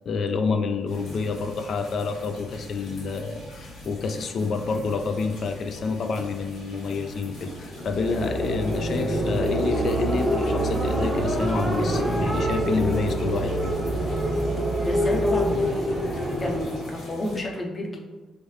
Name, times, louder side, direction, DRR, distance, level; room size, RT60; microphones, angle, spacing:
voice 1, 0.1-13.8 16.0-16.6, left 4 dB, 60° left, 7 dB, 0.3 m, -28 dB
sound 1, 0.9-17.4, left 1 dB, 75° left, 1.2 m, -42 dB
sound 2, 7.6-17.0, right 1 dB, 5° right, 0.7 m, -25 dB
voice 2, 14.8-18.1, left 1 dB, 30° left, 0 dB, 0.7 m, -31 dB
3.2 x 2.6 x 3.1 m, 1.3 s
cardioid pair, 90°, 0 cm